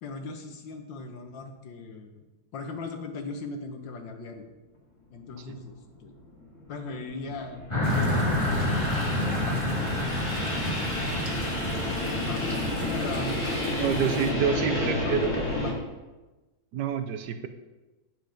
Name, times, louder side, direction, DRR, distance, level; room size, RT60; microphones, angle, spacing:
voice 1, 0.0-2.2 2.5-4.4 5.1-6.2 6.7-10.0 12.3-14.1 14.5-15.8, left 3 dB, 75° left, 5 dB, 1.8 m, -39 dB
sound 1, 5.4-5.5 6.0-15.7, left 2 dB, 40° left, 2.4 m, -31 dB
sound 2, 7.7-15.2, left 1 dB, 15° left, 1.9 m, -30 dB
sound 3, 7.8-14.3, right 3 dB, 45° right, 1.5 m, -40 dB
voice 2, 13.8-15.3 16.7-17.5, right 8 dB, 70° right, 9 dB, 1.1 m, -28 dB
9.1 x 7.7 x 5.1 m, 1.1 s
omnidirectional pair, 2.1 m